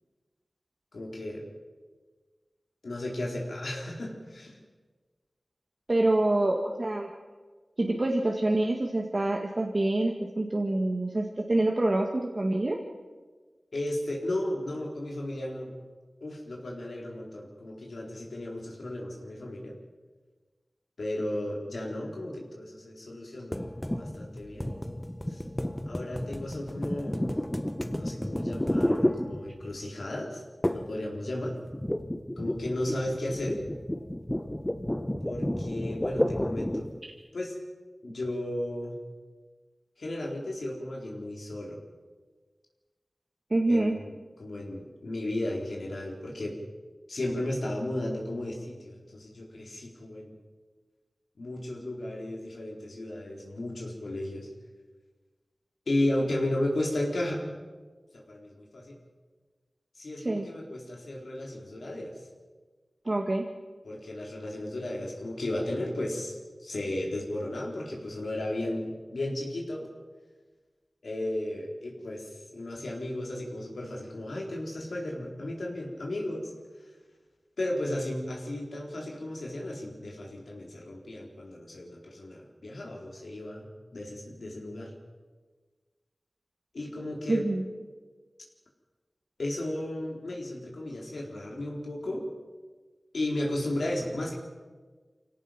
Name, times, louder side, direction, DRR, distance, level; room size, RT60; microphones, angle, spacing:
voice 1, 0.9-1.5 2.8-4.6 13.7-15.7 16.2-19.7 21.0-23.7 24.0-24.7 25.3-25.4 25.9-27.3 27.9-30.4 30.7-31.6 32.4-33.6 35.2-36.9 37.3-37.6 38.0-39.0 40.0-41.8 43.7-46.5 47.1-50.3 51.4-54.5 55.9-57.5 58.1-59.0 59.9-62.1 63.8-69.9 71.0-76.5 77.6-83.7 83.9-84.9 86.7-87.4 89.4-92.2 93.1-94.3, left 1 dB, 85° left, -1 dB, 4.3 m, -34 dB
voice 2, 5.9-7.1 7.8-12.8 43.5-44.0 60.2-60.5 63.1-63.5 87.3-87.6, right 2 dB, 45° right, 0 dB, 1.9 m, -26 dB
sound 1, 23.5-29.8 30.6-31.0 31.3-37.0, left 1 dB, 15° left, 1.1 m, -31 dB
25.5 x 17.5 x 6.0 m, 1.4 s
wide cardioid pair, 45°, 0 cm